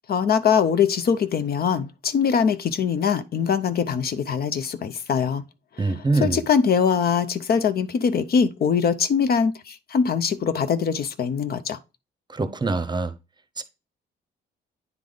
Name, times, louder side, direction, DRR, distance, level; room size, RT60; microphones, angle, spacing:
voice 1, 0.1-5.4 5.9-11.8, left 6 dB, 50° left, 0.6 m, -22 dB
voice 2, 5.8-6.4 12.3-13.1 13.6-13.7, right 3 dB, 20° right, 0.7 m, -24 dB
9.4 x 3.4 x 3.8 m
cardioid pair, 90°, 20 cm